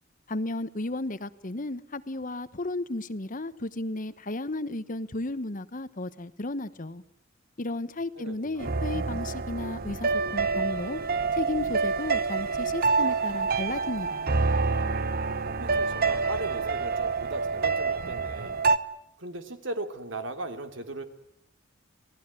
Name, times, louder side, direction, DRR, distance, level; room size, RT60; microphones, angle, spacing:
voice 1, 0.3-7.0 7.6-11.0 11.4-14.3, left 2 dB, 40° left, 14 dB, 1.1 m, -34 dB
voice 2, 8.2-8.8 15.4-18.6 19.2-21.0, right 2 dB, 65° right, 7 dB, 3.0 m, -38 dB
sound 1, 8.6-18.8, right 4 dB, 50° right, 1.1 m, -27 dB
28.0 x 19.0 x 9.8 m, 0.73 s
head